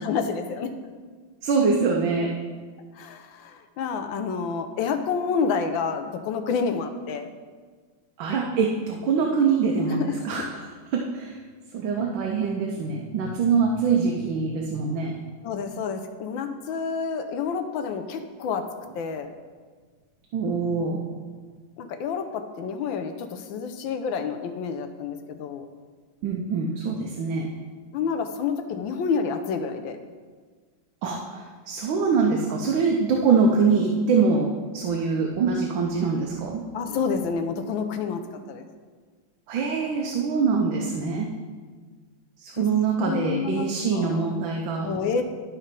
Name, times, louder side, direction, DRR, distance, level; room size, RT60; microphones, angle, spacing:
voice 1, 0.0-0.7 3.0-7.3 9.9-10.5 15.4-18.7 18.9-19.3 21.8-25.6 27.9-30.0 36.7-38.7 42.6-42.7 43.0-43.7 43.9-44.3 44.8-45.2, left 5 dB, 85° left, 7 dB, 1.4 m, -29 dB
voice 2, 1.4-2.3 8.2-10.5 10.9-11.4 11.7-15.2 20.3-21.0 26.2-27.5 31.0-36.6 39.5-41.3 42.4-44.9, right 5 dB, 80° right, 0 dB, 1.5 m, -24 dB
11.5 x 4.3 x 5.2 m, 1.5 s
omnidirectional pair, 2.1 m